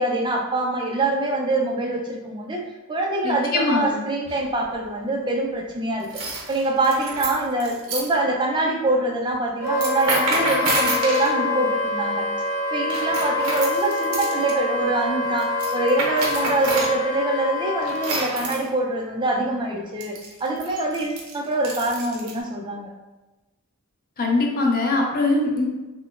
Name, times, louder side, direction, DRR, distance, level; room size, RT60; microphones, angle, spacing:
voice 1, 0.0-2.6 2.9-6.1 6.5-12.3 12.7-22.9, right 2 dB, 20° right, 0 dB, 0.4 m, -24 dB
voice 2, 3.2-4.0 24.2-25.7, left 2 dB, 45° left, 1 dB, 0.5 m, -22 dB
sound 1, 4.2-4.7 6.0-8.1 9.7-11.3 12.9-14.5 15.4-17.0 17.8-18.6 20.0-22.4, right 2 dB, 70° right, 0.6 m, -28 dB
Wind instrument woodwind instrument, 9.6-18.1, left 2 dB, 45° right, 1.4 m, -26 dB
3.6 x 2.2 x 2.4 m, 1.1 s
head